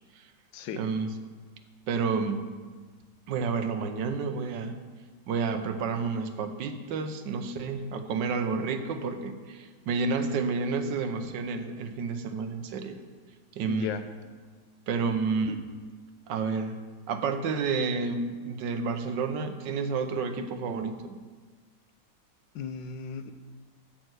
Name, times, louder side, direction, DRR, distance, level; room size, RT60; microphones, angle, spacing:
voice 1, 0.7-1.1 1.9-2.5 3.3-4.8 5.3-13.0 13.5-13.9 14.9-15.6 16.3-16.8 17.1-21.2, right 4 dB, 80° right, 8 dB, 1.5 m, -30 dB
voice 2, 13.7-14.0 22.5-23.3, left 8 dB, 85° left, 9 dB, 1.4 m, -36 dB
11.5 x 4.5 x 7.9 m, 1.4 s
omnidirectional pair, 1.9 m